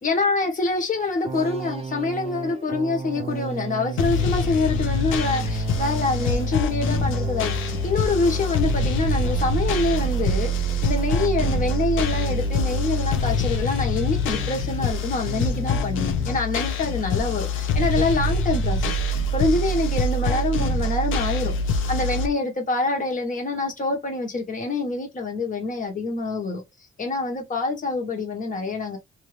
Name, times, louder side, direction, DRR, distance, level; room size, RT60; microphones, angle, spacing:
voice 1, 0.0-10.5 10.8-26.6 27.0-29.0, left 3 dB, 40° left, 1.3 m, -26 dB
sound 1, 1.2-15.0 15.3-16.4, right 6 dB, 30° right, 0.4 m, -33 dB
sound 2, 4.0-22.3, left 2 dB, 80° left, 0.6 m, -25 dB
2.7 x 2.7 x 3.2 m
cardioid pair, 90°, 20 cm